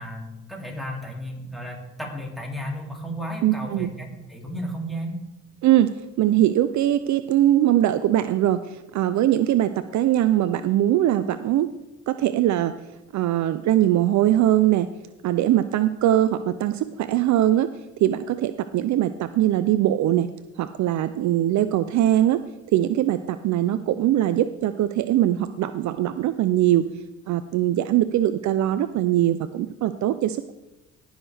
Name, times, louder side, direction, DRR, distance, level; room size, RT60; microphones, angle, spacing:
voice 1, 0.0-5.1, equal, ahead, -1 dB, 2.8 m, -34 dB
voice 2, 3.4-3.9 5.6-11.7 12.1-12.7 13.1-14.9 15.2-17.7 18.0-20.3 20.6-22.4 22.7-26.8 27.3-30.5, right 12 dB, 70° right, 12 dB, 0.5 m, -21 dB
18.5 x 6.3 x 3.4 m, 0.98 s
cardioid pair, 90°, 30 cm